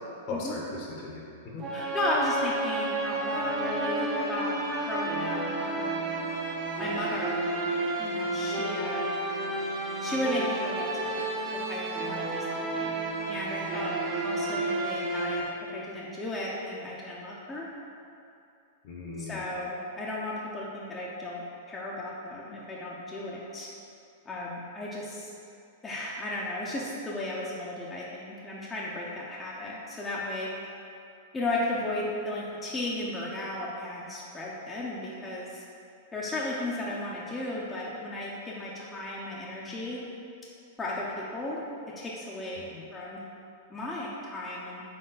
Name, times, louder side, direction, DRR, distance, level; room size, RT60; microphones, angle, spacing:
voice 1, 0.3-1.7 18.8-19.4 42.7-42.8, left 3 dB, 55° left, -3 dB, 0.7 m, -38 dB
sound 1, 1.6-15.4, right 2 dB, 35° right, 0.7 m, -31 dB
voice 2, 1.7-4.6 4.9-6.1 6.8-7.5 8.0-9.1 10.0-11.2 11.5-13.9 14.2-17.7 19.2-21.4 21.7-23.7 24.3-25.3 25.8-30.5 31.3-35.6 36.1-40.0 40.8-41.6 42.0-42.6 42.9-43.2 43.7-44.8, left 1 dB, 15° left, -6 dB, 0.5 m, -35 dB
4.0 x 3.2 x 3.9 m, 2.6 s
hypercardioid pair, 125°, 0 cm